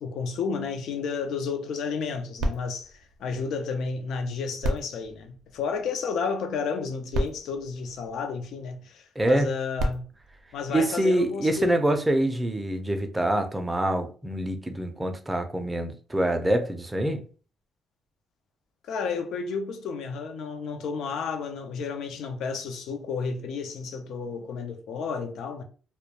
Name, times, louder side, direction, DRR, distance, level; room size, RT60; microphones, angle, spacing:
voice 1, 0.0-10.1 10.5-11.7 18.8-25.6, left 5 dB, 75° left, 0.4 m, -32 dB
sound 1, 2.4-4.0 4.6-6.2 6.8-6.9 7.1-8.7 9.5-11.4 12.1-12.2, right 1 dB, 80° right, 0.4 m, -34 dB
voice 2, 9.2-9.5 10.7-17.2, right 1 dB, 15° right, 0.4 m, -25 dB
2.2 x 2.1 x 2.8 m
cardioid pair, 90°, 0 cm